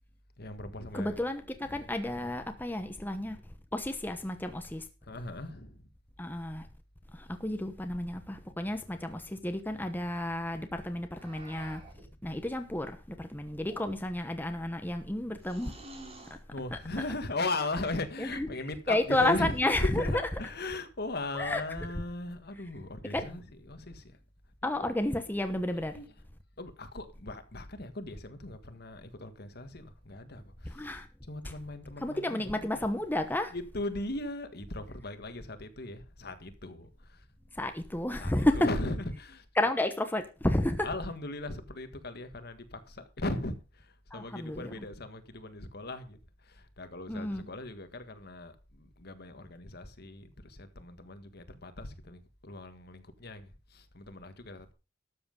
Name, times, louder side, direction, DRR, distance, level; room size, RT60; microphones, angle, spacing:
voice 1, 0.4-1.2 1.6-2.3 5.0-5.9 12.0-12.1 15.0-15.1 16.5-24.2 24.6-24.9 25.9-26.2 26.6-32.7 33.5-37.2 38.2-39.5 40.8-54.7, left 2 dB, 55° left, 1.6 m, -38 dB
voice 2, 0.9-3.4 3.7-4.8 6.2-6.7 7.1-11.8 12.2-15.7 16.3-16.4 16.7-16.8 18.2-18.5 18.9-20.2 21.3-21.6 23.1-23.3 24.6-26.0 30.6-31.1 32.0-33.5 37.5-38.7 39.6-40.9 44.1-44.8 47.1-47.5, left 1 dB, 10° left, 1.0 m, -31 dB
sound 1, 11.2-12.1 13.6-14.3 15.4-16.4 17.7-18.1 19.0-19.7, right 2 dB, 35° right, 4.0 m, -51 dB
13.0 x 7.7 x 5.3 m
head